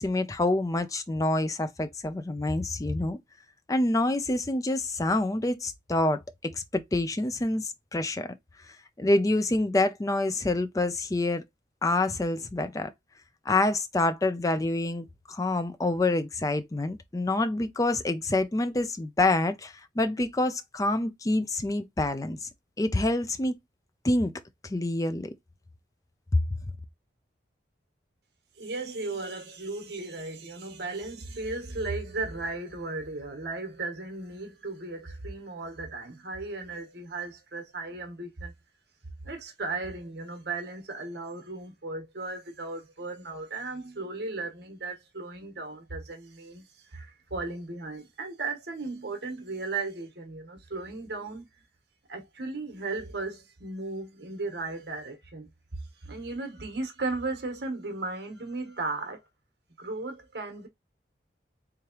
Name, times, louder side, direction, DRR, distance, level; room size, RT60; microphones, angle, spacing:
voice 1, 0.0-3.2 3.7-6.2 6.5-8.3 9.0-11.4 11.8-12.9 13.5-22.5 22.8-23.5 24.0-24.3 24.6-25.3 26.3-26.4, left 2 dB, 20° left, 0.4 m, -27 dB
voice 2, 28.5-38.5 39.2-51.5 52.1-55.5 56.0-59.2 59.8-60.7, right 3 dB, 70° right, 1.3 m, -36 dB
3.6 x 3.2 x 2.9 m
head